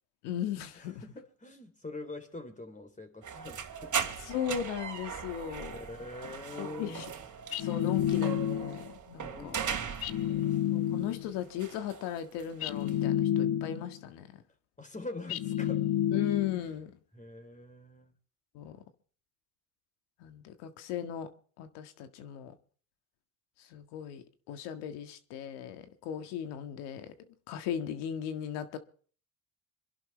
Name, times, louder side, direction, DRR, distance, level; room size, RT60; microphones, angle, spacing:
voice 1, 0.2-1.0 4.3-5.7 6.5-7.1 7.6-9.6 10.7-14.4 16.1-16.9 18.5-18.8 20.2-21.3 21.6-22.5 23.6-27.1 27.5-28.8, left 10 dB, 90° left, 1.9 m, -37 dB
voice 2, 0.7-4.0 5.7-7.0 9.2-10.6 14.8-15.9 16.5-16.7 17.1-18.1, left 2 dB, 20° left, 3.6 m, -45 dB
sound 1, 3.2-10.7 10.9-13.0, right 7 dB, 50° right, 2.6 m, -39 dB
sound 2, 7.5-8.9 10.0-11.3 12.6-14.0 15.3-16.7, left 11 dB, 65° left, 1.0 m, -30 dB
26.5 x 11.5 x 3.3 m
supercardioid pair, 80°, 39 cm